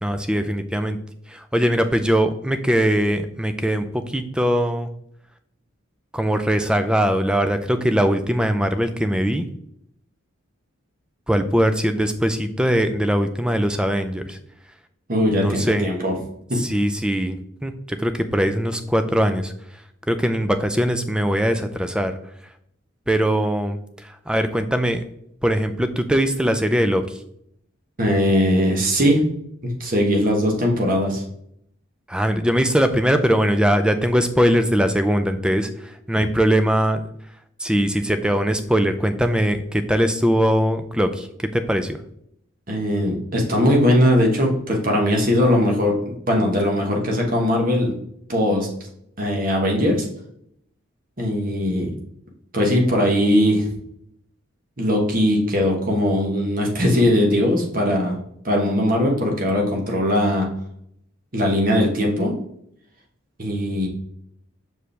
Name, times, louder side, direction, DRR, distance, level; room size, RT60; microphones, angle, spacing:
voice 1, 0.0-1.0 1.3-4.9 6.1-9.5 11.3-14.4 15.3-15.9 16.6-19.5 20.1-22.2 23.1-25.0 25.4-27.2 32.1-37.0 37.6-42.0, equal, 5° right, 8 dB, 0.4 m, -21 dB
voice 2, 15.1-16.1 16.5-16.6 28.0-29.2 29.6-31.2 42.7-47.9 48.3-48.7 49.2-50.1 51.2-51.9 52.5-53.7 54.8-58.2 58.4-60.5 61.3-62.3 63.4-63.9, equal, 45° right, 1 dB, 1.4 m, -20 dB
6.2 x 4.9 x 3.3 m, 0.72 s
head